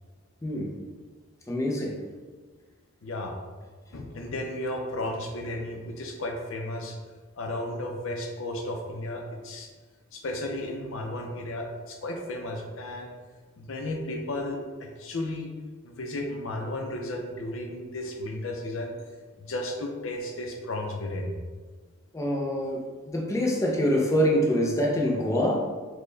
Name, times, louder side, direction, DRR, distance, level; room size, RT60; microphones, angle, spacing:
voice 1, 0.4-0.8 1.5-2.0 22.1-25.6, equal, 15° left, -1 dB, 0.4 m, -25 dB
voice 2, 3.0-3.4 3.9-7.0 7.4-9.7 10.1-13.1 13.6-15.5 15.8-18.9 19.4-21.3, left 1 dB, 80° left, 3 dB, 0.5 m, -34 dB
4.3 x 2.1 x 3.2 m, 1.4 s
head